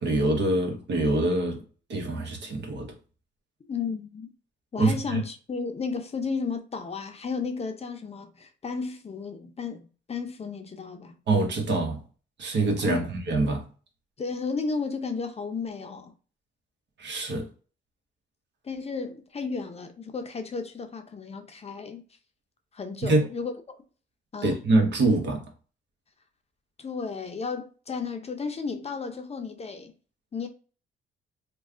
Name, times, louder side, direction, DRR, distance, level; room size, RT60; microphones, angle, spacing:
voice 1, 0.0-1.6 1.9-2.9 4.8-5.2 11.3-12.0 12.4-13.6 17.0-17.5 23.0-23.3 24.4-25.4, right 2 dB, 65° right, 1.2 m, -25 dB
voice 2, 3.7-4.3 4.7-11.1 12.8-13.0 14.2-16.1 18.6-22.0 22.7-23.8 24.3-24.6 26.8-29.9 30.3-30.5, left 5 dB, 30° left, 0.6 m, -33 dB
3.2 x 2.3 x 3.6 m
cardioid pair, 90°, 20 cm